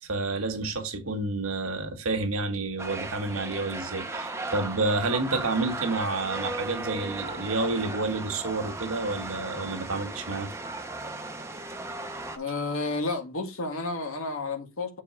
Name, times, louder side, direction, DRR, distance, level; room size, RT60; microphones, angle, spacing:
voice 1, 0.1-10.5, right 3 dB, 85° right, 1.8 m, -29 dB
sound 1, 2.8-12.4, right 2 dB, 15° right, 0.8 m, -36 dB
voice 2, 12.3-15.0, left 3 dB, 80° left, 1.8 m, -31 dB
7.2 x 4.5 x 4.5 m
head